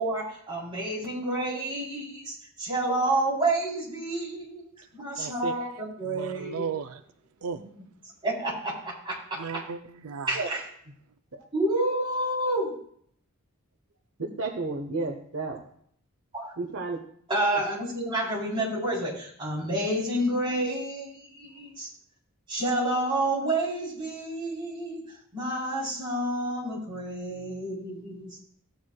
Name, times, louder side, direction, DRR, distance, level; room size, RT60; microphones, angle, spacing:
voice 1, 0.0-6.6 7.6-7.7 8.2-9.6 10.3-10.6 11.5-12.7 16.3-16.5 17.3-21.9 22.5-25.0 25.3-28.4, right 1 dB, 20° right, -6 dB, 3.5 m, -29 dB
voice 2, 5.2-5.6 6.0-7.0 7.4-7.6 9.4-10.4, right 6 dB, 85° right, 9 dB, 0.4 m, -35 dB
voice 3, 14.2-15.6 16.6-17.0, right 3 dB, 70° right, 3 dB, 1.1 m, -32 dB
15.0 x 8.4 x 2.3 m, 0.63 s
head